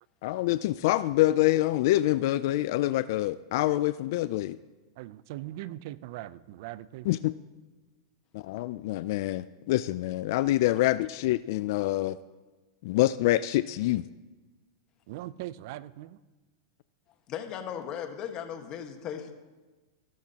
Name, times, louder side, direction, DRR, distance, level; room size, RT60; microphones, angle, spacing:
voice 1, 0.2-4.6 7.1-7.3 8.3-12.2 12.8-14.0, left 16 dB, 60° left, 15 dB, 0.3 m, -26 dB
voice 2, 5.0-7.2 15.1-16.2, right 15 dB, 60° right, 18 dB, 0.4 m, -40 dB
voice 3, 17.3-19.3, left 8 dB, 35° left, 6 dB, 1.4 m, -37 dB
16.0 x 13.0 x 2.9 m, 1.2 s
supercardioid pair, 130°, 2 cm